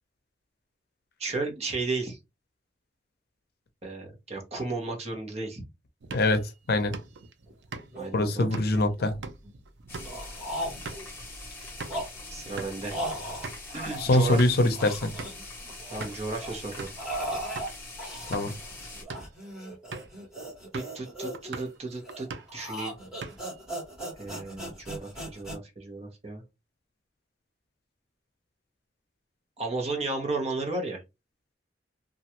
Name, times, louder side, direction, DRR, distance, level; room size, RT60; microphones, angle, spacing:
voice 1, 1.2-2.2 3.8-5.6 7.9-8.5 12.3-13.0 13.7-14.5 15.9-16.9 20.7-22.9 24.2-26.4 29.6-31.0, right 3 dB, 35° right, 1.0 m, -34 dB
sound 1, 6.0-12.1 12.4-12.8 13.1-13.2 13.4-13.6 14.1-14.7 15.2-15.5 16.0-16.3 16.8-17.1 17.6-17.7 18.2-18.6 19.0-19.4 19.9-20.2 20.7-21.0 21.3-21.8 22.1-22.6 23.0-23.6, right 4 dB, 75° right, 0.5 m, -42 dB
voice 2, 6.1-6.9 8.1-9.1 14.0-15.1 18.3-18.5, left 2 dB, 60° left, 0.6 m, -23 dB
sound 2, 7.5-7.6 7.8-8.1 8.7-9.5 10.0-11.1 11.6-14.5 14.7-16.1 16.4-25.6, right 1 dB, 5° right, 1.7 m, -38 dB
sound 3, 9.9-19.0, left 2 dB, 15° left, 1.3 m, -43 dB
3.0 x 2.4 x 2.8 m
head